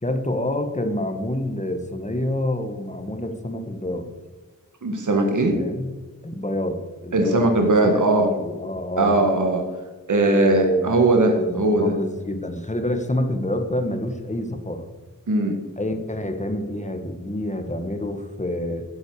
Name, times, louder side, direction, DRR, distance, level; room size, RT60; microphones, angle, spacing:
voice 1, 0.0-4.1 5.4-5.9 6.2-9.2 10.3-11.0 11.3-14.9 15.8-18.8, left 1 dB, 20° left, 6 dB, 1.4 m, -27 dB
voice 2, 4.8-5.6 7.1-8.3 9.0-9.6 10.1-11.9 15.3-15.6, right 2 dB, 65° right, 3 dB, 1.5 m, -19 dB
12.0 x 8.2 x 4.8 m, 1.3 s
wide cardioid pair, 75°, 33 cm